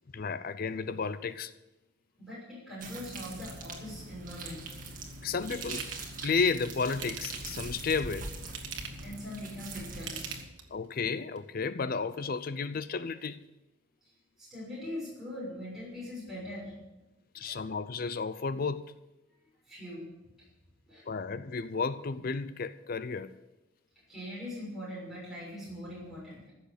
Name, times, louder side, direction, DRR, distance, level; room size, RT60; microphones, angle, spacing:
voice 1, 0.1-1.5 5.2-5.9 6.2-8.3 10.7-13.4 17.3-18.9 21.1-23.3, left 5 dB, 50° left, 0.5 m, -32 dB
voice 2, 2.2-4.8 9.0-10.4 14.0-14.1 14.4-16.7 17.3-17.7 19.6-20.5 20.9-21.0 24.1-26.5, left 1 dB, ahead, 6.4 m, -42 dB
sound 1, 2.8-10.4, right 2 dB, 45° right, 2.1 m, -42 dB
Ratchet pawl / Tools, 5.5-6.0 6.9-7.6 8.4-9.1 9.9-10.8 11.3-11.4, right 7 dB, 70° right, 1.6 m, -41 dB
15.0 x 6.6 x 8.2 m
head